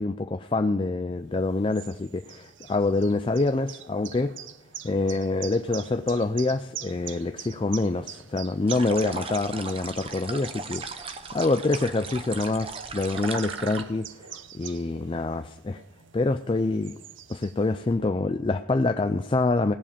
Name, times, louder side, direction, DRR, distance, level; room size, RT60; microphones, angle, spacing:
voice 1, 0.0-4.3 4.8-15.8 16.1-17.0 17.3-19.7, left 3 dB, 25° left, 8 dB, 0.4 m, -26 dB
sound 1, 1.3-17.9, right 9 dB, 70° right, 0.7 m, -44 dB
sound 2, 8.7-13.8, right 4 dB, 30° right, 0.9 m, -37 dB
17.5 x 7.4 x 7.0 m, 0.92 s
head